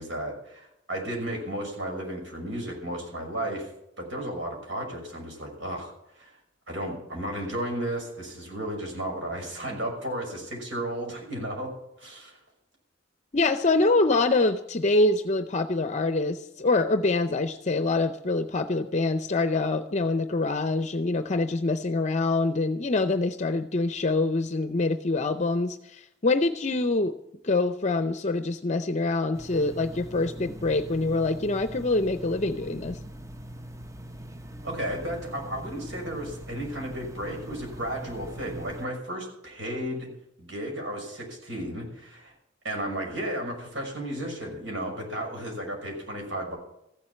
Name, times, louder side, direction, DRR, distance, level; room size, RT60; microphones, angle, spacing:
voice 1, 0.0-3.7 4.0-6.3 6.7-11.7 12.0-12.4 34.6-40.1 40.4-42.3 42.6-46.5, right 1 dB, 75° right, 0 dB, 6.0 m, -34 dB
voice 2, 13.3-27.1 27.4-33.0, left 2 dB, 40° left, 10 dB, 0.6 m, -25 dB
sound 1, 29.3-38.9, right 1 dB, 15° right, 0.7 m, -42 dB
15.0 x 7.6 x 9.6 m, 0.81 s
head